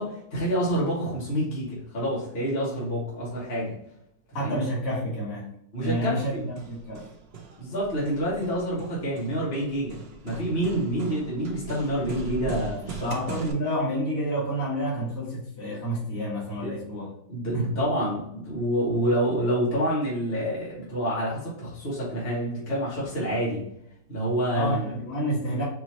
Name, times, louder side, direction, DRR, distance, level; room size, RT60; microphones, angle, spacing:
voice 1, 0.0-3.7 4.4-4.6 5.7-6.4 7.6-13.1 16.6-16.7 17.3-23.6 24.1-24.9, equal, 35° left, -6 dB, 1.8 m, -28 dB
voice 2, 4.3-5.5 5.8-7.0 13.0-17.1 17.5-17.8 24.5-25.6, equal, 50° left, -7 dB, 1.9 m, -29 dB
Hammer, 6.0-13.5, right 4 dB, 55° right, 0.7 m, -40 dB
4.7 x 3.1 x 2.8 m, 0.76 s
omnidirectional pair, 1.9 m